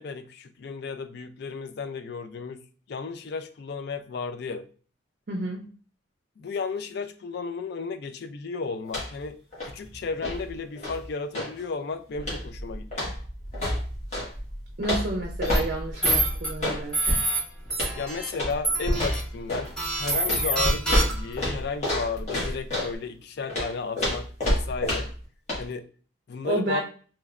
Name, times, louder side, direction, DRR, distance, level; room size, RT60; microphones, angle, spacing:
voice 1, 0.0-2.6 2.9-4.7 6.4-9.4 9.6-13.1 17.9-25.1 25.6-25.9 26.3-26.8, left 4 dB, 55° left, 8 dB, 0.3 m, -34 dB
voice 2, 5.3-5.7 14.8-17.2 26.4-26.8, right 2 dB, 45° right, 2 dB, 0.5 m, -30 dB
sound 1, 8.8-9.3 9.5-11.6 12.2-12.6 12.9-14.3 14.8-16.8 17.7-18.0 18.3-18.6 18.9-19.7 20.3-22.9 23.5-25.2 25.5-25.6, left 1 dB, 35° left, 1.2 m, -29 dB
Crackle, 12.1-23.0, equal, 80° left, 1.4 m, -36 dB
sound 2, 15.4-15.6 16.0-16.5 16.9-17.4 17.7-18.3 18.6-19.2 19.8-21.3, right 2 dB, 5° left, 0.8 m, -26 dB
3.1 x 3.0 x 2.3 m, 0.41 s
head